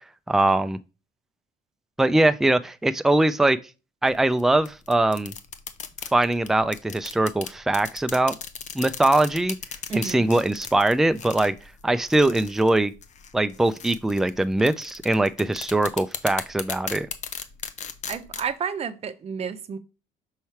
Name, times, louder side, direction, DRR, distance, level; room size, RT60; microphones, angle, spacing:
voice 1, 0.3-0.8 2.0-3.6 4.0-5.3 6.1-8.3 8.7-9.6 9.9-11.5 11.8-12.9 13.3-17.1, right 2 dB, ahead, 0.4 m, -22 dB
sound 1, 4.1-18.5, left 7 dB, 45° left, 0.7 m, -37 dB
voice 2, 9.9-10.3 18.1-19.8, right 6 dB, 40° right, 0.7 m, -31 dB
5.6 x 3.1 x 5.6 m
cardioid pair, 110°, 17 cm